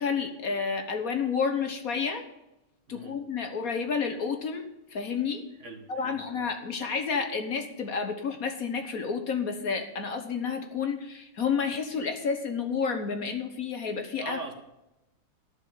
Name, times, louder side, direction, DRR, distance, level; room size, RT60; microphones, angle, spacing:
voice 1, 0.0-2.2 2.9-5.4 5.9-14.4, left 5 dB, 55° left, 7 dB, 1.4 m, -30 dB
voice 2, 5.6-6.2 14.2-14.5, right 3 dB, 45° right, 5 dB, 1.5 m, -40 dB
11.5 x 6.3 x 8.8 m, 0.94 s
omnidirectional pair, 2.0 m